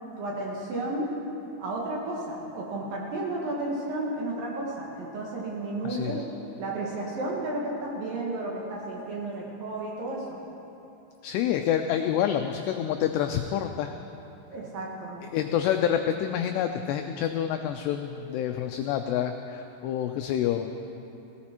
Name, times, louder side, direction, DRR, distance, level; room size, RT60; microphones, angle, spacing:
voice 1, 0.2-1.1 1.6-6.2 6.6-10.4 14.5-15.2, right 2 dB, 60° right, -3 dB, 2.7 m, -32 dB
voice 2, 5.8-6.2 11.2-13.9 15.3-20.7, left 10 dB, 90° left, 6 dB, 2.4 m, -27 dB
17.5 x 17.0 x 4.4 m, 2.9 s
omnidirectional pair, 5.5 m